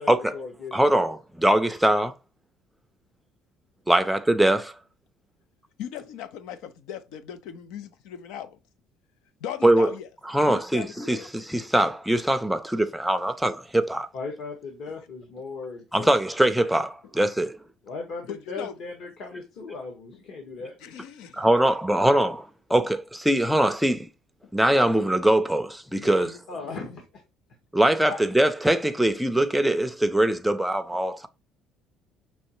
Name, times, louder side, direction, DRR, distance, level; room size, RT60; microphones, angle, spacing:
voice 1, 0.0-0.7 14.1-16.1 17.8-20.8 26.5-27.0, left 4 dB, 55° left, 1.3 m, -37 dB
voice 2, 0.7-2.1 3.9-4.7 9.6-9.9 10.3-14.1 15.9-17.6 21.3-24.1 24.5-26.3 27.7-31.3, right 1 dB, ahead, 0.4 m, -22 dB
voice 3, 5.8-8.6 9.4-10.1 10.4-11.3 18.3-18.7 20.8-21.4 25.9-26.8 28.1-28.2, left 9 dB, 90° left, 0.7 m, -38 dB
5.5 x 3.1 x 2.9 m
cardioid pair, 165°, 0 cm